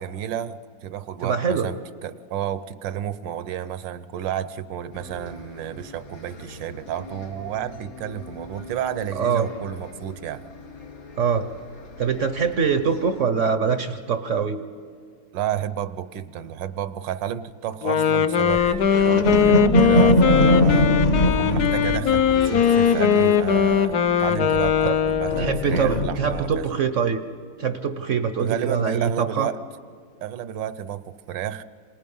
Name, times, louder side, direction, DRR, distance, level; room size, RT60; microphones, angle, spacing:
voice 1, 0.0-10.4 15.3-20.9 21.2-26.7 28.4-29.6 30.2-31.6, right 10 dB, 75° right, 15 dB, 1.4 m, -31 dB
voice 2, 1.2-1.7 9.1-9.5 11.2-11.5 12.0-14.6 24.8-24.9 25.4-27.2 27.6-29.5, right 6 dB, 55° right, 10 dB, 0.9 m, -23 dB
Bus, 4.9-13.3, left 2 dB, 85° left, 3.0 m, -43 dB
Wind instrument woodwind instrument, 17.8-25.7, left 8 dB, 60° left, 1.2 m, -20 dB
sound 1, 18.5-24.1 24.4-26.7, equal, 45° left, 1.3 m, -23 dB
27.5 x 27.5 x 5.5 m, 2.2 s
omnidirectional pair, 2.1 m